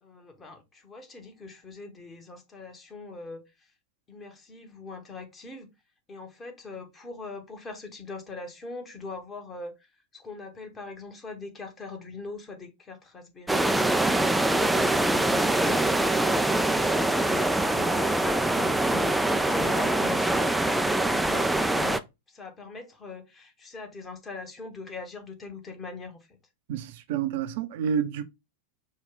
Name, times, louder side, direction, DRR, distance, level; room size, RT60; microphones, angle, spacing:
voice 1, 0.0-3.7 4.1-5.7 6.1-13.7 14.2-16.9 17.2-20.4 20.8-26.4, left 3 dB, 20° left, 1.2 m, -42 dB
sound 1, 13.5-22.0, right 1 dB, 5° right, 0.3 m, -24 dB
voice 2, 26.7-28.2, right 8 dB, 50° right, 0.6 m, -29 dB
5.3 x 2.3 x 3.7 m
figure-of-eight pair, 90°, 0 cm